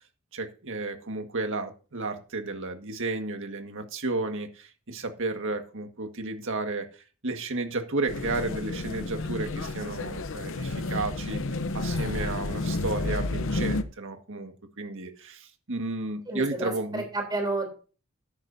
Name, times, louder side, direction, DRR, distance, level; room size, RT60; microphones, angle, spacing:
voice 1, 0.3-17.0, right 3 dB, 60° right, 6 dB, 1.8 m, -33 dB
sound 1, 8.1-13.8, left 2 dB, 65° left, 0.8 m, -31 dB
voice 2, 16.3-17.7, right 2 dB, 20° right, 2 dB, 3.6 m, -30 dB
13.5 x 10.5 x 2.7 m, 0.35 s
head